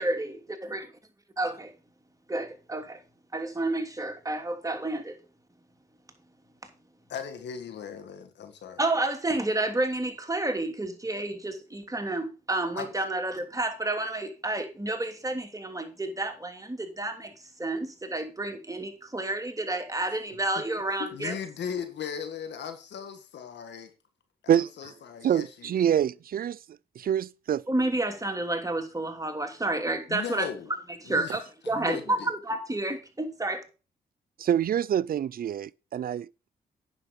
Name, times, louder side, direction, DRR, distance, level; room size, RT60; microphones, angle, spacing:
voice 1, 0.0-0.8 1.4-1.7 2.3-3.0 3.3-5.2 8.8-17.3 17.6-21.3 27.7-30.5 31.0-31.4 31.7-33.6, right 2 dB, 20° right, 2.8 m, -30 dB
voice 2, 7.1-8.8 12.7-12.9 20.6-20.7 21.0-23.9 24.4-25.9 30.1-30.7 31.0-32.3, left 7 dB, 75° left, 1.9 m, -38 dB
voice 3, 25.2-26.6 27.0-27.6 34.4-36.3, right 9 dB, 55° right, 0.4 m, -26 dB
9.5 x 6.7 x 5.3 m
supercardioid pair, 50°, 18 cm